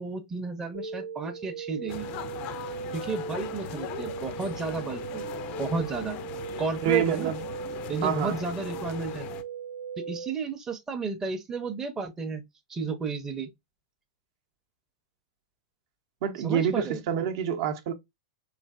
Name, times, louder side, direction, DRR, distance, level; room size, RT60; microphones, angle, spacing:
voice 1, 0.0-2.1 2.9-5.2 5.6-6.2 6.6-7.3 7.9-9.3 10.0-12.4 12.7-13.5 16.4-17.0, right 4 dB, 15° right, 0.6 m, -32 dB
sound 1, 0.7-10.3, right 6 dB, 85° right, 1.0 m, -38 dB
sound 2, 1.9-9.4, left 10 dB, 45° left, 0.4 m, -40 dB
voice 2, 6.8-7.4 8.0-8.4 16.2-17.9, right 8 dB, 55° right, 0.7 m, -27 dB
3.2 x 2.5 x 2.3 m
hypercardioid pair, 110°, 3 cm